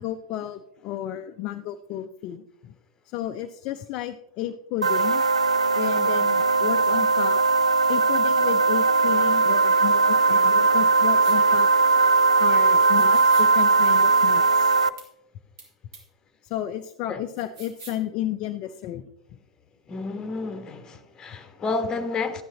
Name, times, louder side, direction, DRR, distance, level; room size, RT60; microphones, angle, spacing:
voice 1, 0.0-2.7 3.1-5.2 5.7-7.4 7.9-11.7 12.4-14.7 16.4-19.0, left 12 dB, 40° left, 0.5 m, -32 dB
sound 1, 4.8-14.9, right 4 dB, 80° right, 0.4 m, -19 dB
sound 2, 11.2-11.4 12.8-13.5 15.0-15.1 15.6-15.7 15.9-16.0 17.4-18.0, right 4 dB, 50° right, 3.1 m, -43 dB
voice 2, 19.9-22.4, left 3 dB, 20° left, 1.2 m, -30 dB
12.5 x 10.0 x 2.9 m
figure-of-eight pair, 90°, 3 cm